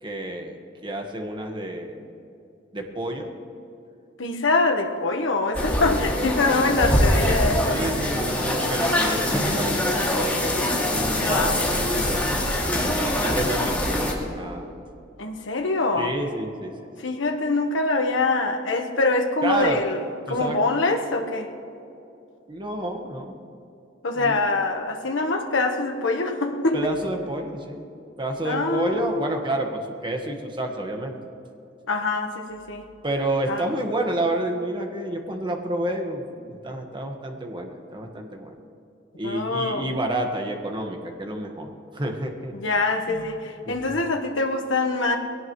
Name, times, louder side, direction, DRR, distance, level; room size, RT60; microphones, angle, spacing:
voice 1, 0.0-2.0 2.7-3.3 7.6-10.0 10.9-14.7 16.0-16.7 19.4-19.8 20.3-20.6 22.5-23.4 24.1-24.4 26.7-27.9 28.2-31.2 33.0-38.6 39.2-42.5 43.1-43.3 43.6-43.8, right 1 dB, 25° right, 3 dB, 1.4 m, -29 dB
voice 2, 4.2-7.7 11.2-11.6 15.2-16.1 17.0-21.5 24.0-26.9 28.4-29.3 31.9-32.8 33.5-33.7 39.2-39.9 42.5-45.2, left 3 dB, 80° left, 3 dB, 1.2 m, -24 dB
sound 1, 5.5-14.1, left 1 dB, 10° left, 2.4 m, -23 dB
21.5 x 17.5 x 3.1 m, 2.7 s
head